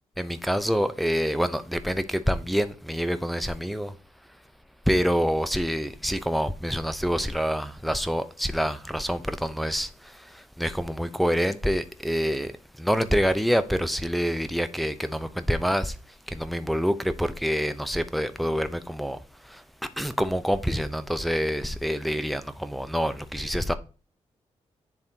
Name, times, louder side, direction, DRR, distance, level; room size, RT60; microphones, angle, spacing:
voice 1, 0.2-3.9 4.9-12.5 12.8-16.0 16.3-19.2 19.5-19.6 20.0-23.7, equal, ahead, 0.8 m, -26 dB
10.5 x 3.5 x 2.8 m
hypercardioid pair, 40°, 14 cm